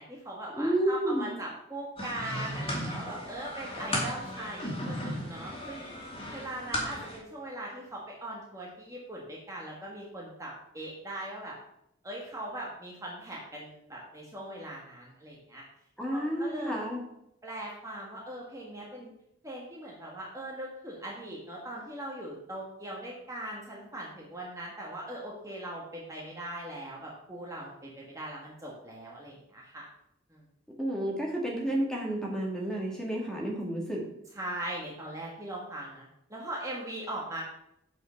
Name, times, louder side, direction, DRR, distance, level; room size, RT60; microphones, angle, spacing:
voice 1, 0.0-11.5 12.0-15.6 16.1-16.8 17.4-19.1 19.4-29.8 30.3-30.4 34.3-37.4, right 1 dB, 15° right, -4 dB, 1.6 m, -40 dB
voice 2, 0.5-1.3 16.0-17.0 30.7-34.1, right 1 dB, 5° left, -2 dB, 1.9 m, -31 dB
sound 1, 2.0-7.2, equal, 30° left, 2.5 m, -35 dB
8.0 x 5.7 x 5.7 m, 0.78 s
head